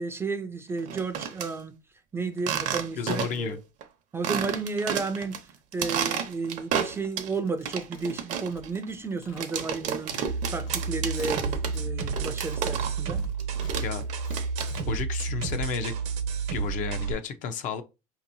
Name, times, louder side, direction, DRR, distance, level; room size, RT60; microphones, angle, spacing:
voice 1, 0.0-1.8 2.1-3.6 4.1-10.1 10.5-13.2, right 4 dB, 15° right, 0.4 m, -32 dB
sound 1, 0.8-1.5 2.4-3.5 3.8-3.9 4.2-5.4 5.7-7.3 7.7-13.1 13.4-15.0, right 8 dB, 50° right, 0.7 m, -31 dB
voice 2, 3.0-3.6 13.8-14.1 14.9-15.9 16.5-17.8, left 7 dB, 55° left, 0.6 m, -32 dB
sound 2, 7.3-9.0 9.2-10.8 11.0-11.8 12.1-14.8, left 4 dB, 85° left, 1.4 m, -48 dB
sound 3, 10.3-17.1, right 5 dB, 80° right, 0.9 m, -31 dB
5.2 x 2.9 x 2.6 m
cardioid pair, 130°, 16 cm